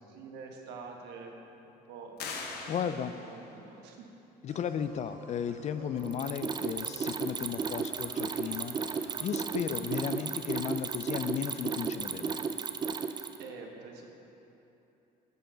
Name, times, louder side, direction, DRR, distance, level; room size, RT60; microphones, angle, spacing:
voice 1, 0.0-4.1 13.4-14.1, right 4 dB, 90° right, 1 dB, 1.1 m, -47 dB
sound 1, 2.2-3.6, left 4 dB, 70° left, 0.9 m, -41 dB
voice 2, 2.7-3.1 4.4-12.4, left 8 dB, 45° left, 12 dB, 0.4 m, -35 dB
sound 2, 4.5-8.2 8.5-9.2 9.5-10.2, right 3 dB, 60° right, 1.3 m, -53 dB
Mechanisms, 6.0-13.5, right 5 dB, 25° right, 0.4 m, -34 dB
10.0 x 6.9 x 3.9 m, 3.0 s
cardioid pair, 110°, 17 cm